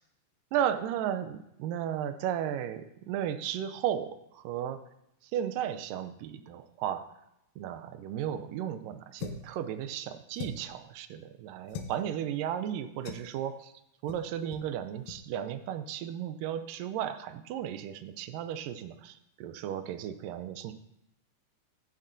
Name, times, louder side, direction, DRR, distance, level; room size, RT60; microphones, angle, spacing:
voice 1, 0.5-4.8 5.3-7.0 7.6-13.7 14.0-20.7, right 10 dB, 80° right, 10 dB, 2.2 m, -34 dB
sound 1, 9.2-9.5 10.4-10.8 11.7-12.0 13.1-13.3 14.1-14.3 14.5-14.7 15.0-15.2, left 6 dB, 80° left, 2.6 m, -40 dB
15.0 x 9.7 x 2.6 m, 0.82 s
omnidirectional pair, 4.0 m